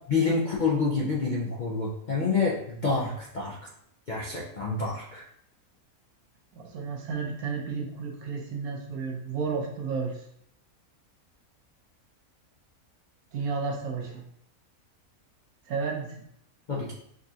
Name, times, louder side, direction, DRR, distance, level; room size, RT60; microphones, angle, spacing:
voice 1, 0.1-3.6 4.1-5.3 16.7-16.9, left 4 dB, 55° left, -5 dB, 0.5 m, -27 dB
voice 2, 6.6-10.2 13.3-14.2 15.7-16.2, right 5 dB, 85° right, 0 dB, 1.3 m, -32 dB
5.1 x 2.4 x 2.7 m, 0.71 s
omnidirectional pair, 1.5 m